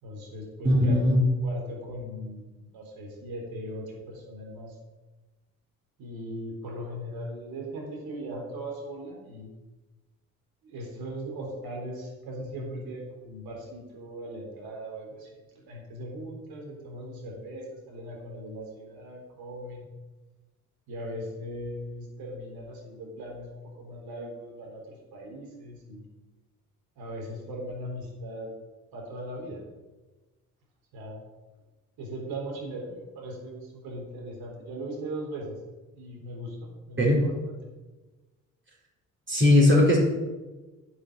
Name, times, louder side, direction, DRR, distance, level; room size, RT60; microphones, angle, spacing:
voice 1, 0.0-2.5 2.7-4.8 6.0-9.5 10.6-19.9 20.9-26.1 27.0-28.5 28.9-29.6 30.9-31.2 32.0-35.6 35.9-37.6, equal, 60° right, -1 dB, 3.9 m, -39 dB
voice 2, 0.6-1.2 37.0-37.2 39.3-40.0, left 1 dB, 30° right, -4 dB, 4.4 m, -19 dB
10.0 x 6.6 x 8.1 m, 1.2 s
figure-of-eight pair, 45°, 41 cm